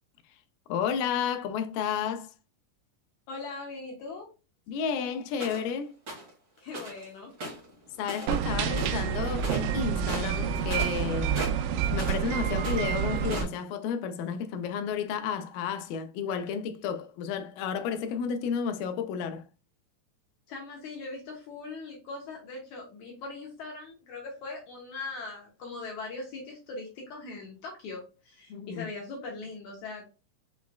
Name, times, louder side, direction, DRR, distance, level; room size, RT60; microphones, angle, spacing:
voice 1, 0.7-2.3 4.7-5.9 8.0-11.4 11.9-19.5 28.5-28.9, left 7 dB, 90° left, 2.3 m, -32 dB
voice 2, 3.3-4.3 6.6-7.3 20.5-30.1, left 3 dB, 65° left, 2.2 m, -40 dB
sound 1, 5.4-5.7 6.1-6.3 6.7-7.0 7.3-8.4 8.7-9.1 9.3-9.7 10.0-12.3 12.6-13.6, right 1 dB, 40° right, 1.5 m, -38 dB
sound 2, 8.3-13.4, right 8 dB, 80° right, 2.1 m, -28 dB
5.9 x 3.1 x 2.3 m
omnidirectional pair, 3.9 m